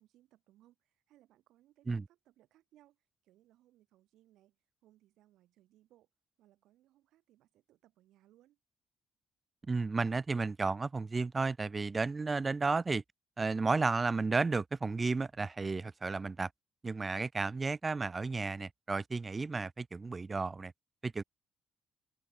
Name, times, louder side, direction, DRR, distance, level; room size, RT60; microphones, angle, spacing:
voice 1, 0.0-6.1 6.4-8.6, right 14 dB, 85° right, 3.2 m, -67 dB
voice 2, 9.7-13.0 13.4-16.5 16.8-20.7 21.0-21.2, right 4 dB, 30° right, 0.4 m, -33 dB
cardioid pair, 90°, 0 cm